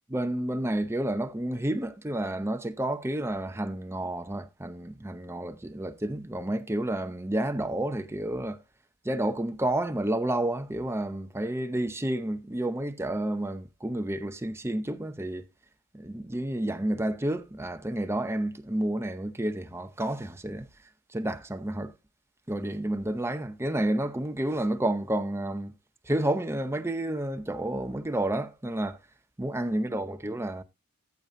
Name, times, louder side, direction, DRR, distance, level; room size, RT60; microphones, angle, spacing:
voice 1, 0.1-8.6 9.0-15.4 15.9-20.7 21.1-21.9 22.5-25.7 26.0-29.0 29.4-30.6, right 1 dB, 10° right, 0.7 m, -30 dB
14.5 x 6.6 x 2.7 m
head